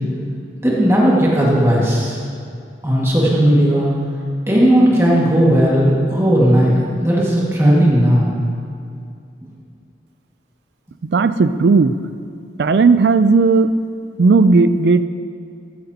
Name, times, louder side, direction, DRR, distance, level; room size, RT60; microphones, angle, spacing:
voice 1, 0.6-2.2 2.8-3.9 4.5-8.3, equal, 15° right, -5 dB, 1.9 m, -15 dB
voice 2, 11.1-12.0 12.6-13.7 14.2-15.0, right 4 dB, 70° right, 12 dB, 0.4 m, -13 dB
14.5 x 11.5 x 2.9 m, 2.4 s
head